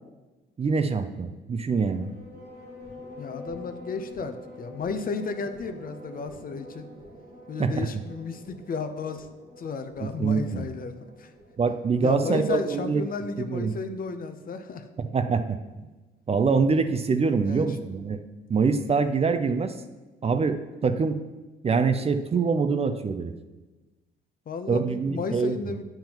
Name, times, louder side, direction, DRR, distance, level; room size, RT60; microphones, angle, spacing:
voice 1, 0.6-2.1 7.6-7.9 10.0-10.7 11.6-13.0 13.5-13.7 15.0-15.6 16.3-18.2 18.5-19.7 20.2-21.2 21.6-23.3 24.7-25.5, right 5 dB, 30° right, 9 dB, 0.4 m, -24 dB
sound 1, 1.8-13.6, left 1 dB, 75° right, 2.2 m, -46 dB
voice 2, 3.2-6.9 7.5-9.3 9.6-11.3 12.0-14.9 17.4-17.7 24.5-25.8, left 4 dB, 45° left, 8 dB, 0.6 m, -33 dB
8.7 x 5.7 x 2.9 m, 1.2 s
cardioid pair, 90°, 20 cm